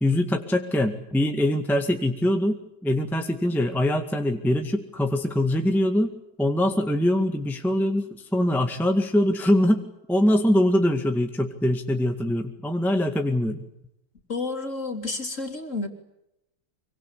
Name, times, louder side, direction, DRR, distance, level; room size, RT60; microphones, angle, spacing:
voice 1, 0.0-6.1 6.4-13.7, left 1 dB, ahead, 4 dB, 1.8 m, -23 dB
voice 2, 14.3-15.9, left 3 dB, 35° left, 4 dB, 3.9 m, -30 dB
26.0 x 24.5 x 8.3 m, 0.86 s
omnidirectional pair, 2.2 m